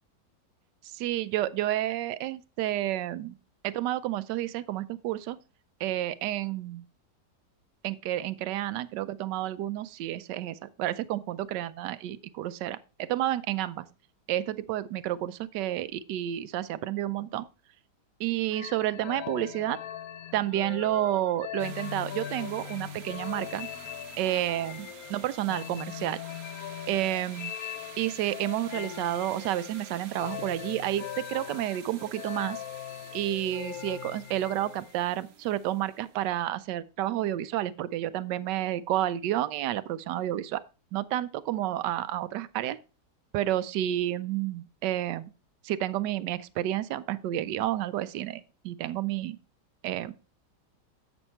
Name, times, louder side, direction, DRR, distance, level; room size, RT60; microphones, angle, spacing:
voice 1, 0.9-3.3 3.6-5.4 5.8-6.8 7.8-13.9 14.3-17.5 18.2-19.8 20.3-23.7 24.2-26.2 26.9-27.6 28.0-32.6 33.1-40.6 40.9-42.8 43.3-45.3 45.6-49.4 49.8-50.3, right 13 dB, 80° right, 1.2 m, -30 dB
sound 1, 18.5-34.9, left 11 dB, 70° left, 0.9 m, -40 dB
sound 2, 21.6-36.4, right 7 dB, 65° right, 1.3 m, -50 dB
8.0 x 6.2 x 4.3 m
omnidirectional pair, 1.9 m